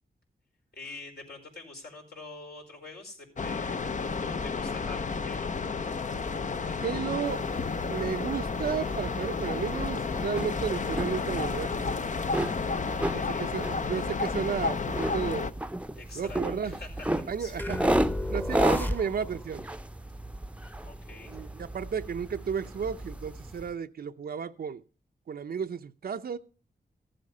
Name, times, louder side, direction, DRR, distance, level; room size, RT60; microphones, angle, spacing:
voice 1, 0.7-5.5 12.9-13.5 15.9-17.0 17.3-17.5 20.8-21.4, left 3 dB, 75° left, 4.9 m, -46 dB
sound 1, 3.4-15.5, left 4 dB, 50° left, 0.7 m, -31 dB
voice 2, 6.7-7.5 7.9-11.7 13.1-15.5 16.1-16.8 17.3-17.8 18.3-19.6 21.3-24.8 25.3-26.4, right 7 dB, 70° right, 0.6 m, -33 dB
sound 2, 7.2-23.7, right 1 dB, 5° right, 0.7 m, -34 dB
sound 3, 17.6-19.5, left 1 dB, 10° left, 1.0 m, -32 dB
14.5 x 7.8 x 5.4 m
cardioid pair, 75°, 17 cm